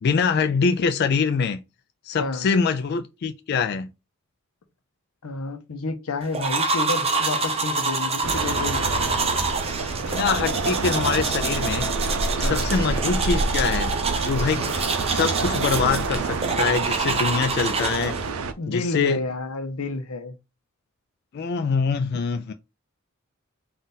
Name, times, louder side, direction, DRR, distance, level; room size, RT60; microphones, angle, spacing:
voice 1, 0.0-1.6 2.0-3.9 10.0-11.9 12.4-14.0 14.2-18.2 18.7-19.2 21.3-22.5, left 5 dB, 50° left, 0.3 m, -24 dB
voice 2, 5.2-9.1 12.4-12.7 18.6-20.3, left 3 dB, 85° left, 0.7 m, -30 dB
sound 1, 6.3-18.3, right 3 dB, 30° right, 0.7 m, -27 dB
sound 2, 8.2-18.5, right 3 dB, 90° right, 0.5 m, -27 dB
3.9 x 2.5 x 4.0 m
head